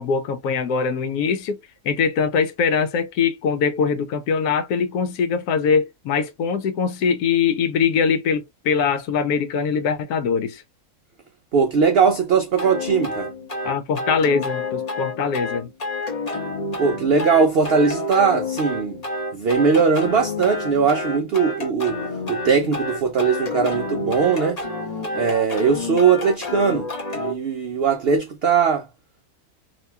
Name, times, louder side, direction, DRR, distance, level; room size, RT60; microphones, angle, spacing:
voice 1, 0.0-1.6 1.8-10.6 13.6-15.7, left 6 dB, 75° left, 1.1 m, -22 dB
voice 2, 11.5-13.3 16.8-19.0 19.3-22.0 22.3-24.6 25.1-28.9, right 5 dB, 75° right, 0.5 m, -20 dB
sound 1, 12.6-27.3, left 2 dB, 35° left, 0.7 m, -29 dB
2.9 x 2.6 x 3.2 m
omnidirectional pair, 1.7 m